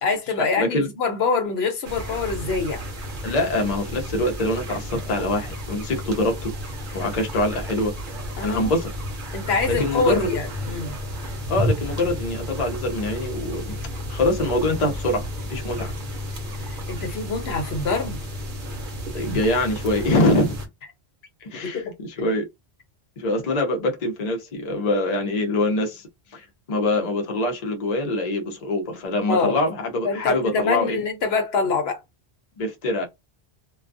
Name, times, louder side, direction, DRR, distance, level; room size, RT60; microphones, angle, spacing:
voice 1, 0.0-2.8 8.4-8.7 9.3-10.9 16.6-18.2 21.6-21.8 29.3-29.6 30.0-32.0, left 4 dB, 70° left, 0.9 m, -25 dB
voice 2, 0.6-0.9 3.2-6.5 6.9-7.9 8.4-8.9 9.7-10.3 11.5-13.8 14.1-15.9 19.1-20.6 21.4-22.5 23.2-31.0 32.6-33.1, left 1 dB, 45° left, 0.6 m, -24 dB
sound 1, 1.8-20.7, equal, 55° right, 0.9 m, -32 dB
2.3 x 2.2 x 2.5 m
omnidirectional pair, 1.1 m